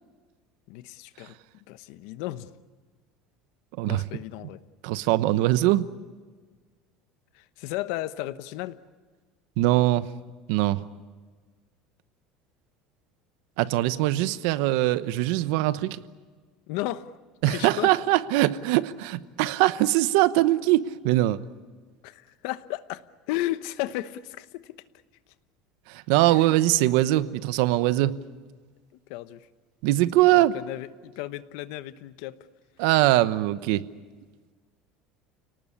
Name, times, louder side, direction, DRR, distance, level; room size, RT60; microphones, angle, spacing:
voice 1, 0.7-1.3 1.7-2.6 3.9-4.6 7.3-8.8 16.7-17.1 17.4-17.9 22.0-24.7 26.3-26.4 29.1-29.5 30.2-32.4, left 15 dB, 70° left, 14 dB, 1.0 m, -34 dB
voice 2, 4.8-5.9 9.6-10.1 10.5-10.8 13.6-16.0 17.4-21.4 25.9-28.2 29.8-30.6 32.8-33.8, right 16 dB, 75° right, 14 dB, 1.0 m, -22 dB
29.0 x 19.0 x 8.6 m, 1.5 s
cardioid pair, 160°, 0 cm